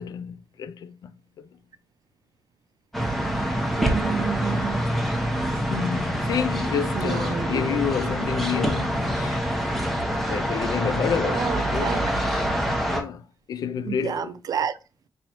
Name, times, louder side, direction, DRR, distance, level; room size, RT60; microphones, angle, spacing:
voice 1, 0.0-1.5 5.7-9.4 10.0-12.1 12.9-14.3, left 7 dB, 90° left, 0.3 m, -30 dB
sound 1, 2.9-13.0, equal, 5° left, 0.8 m, -26 dB
voice 2, 3.8-4.8 6.9-7.8 11.2-12.1 13.8-14.8, right 7 dB, 75° right, 0.4 m, -30 dB
5.0 x 3.1 x 2.9 m
wide cardioid pair, 100°, 6 cm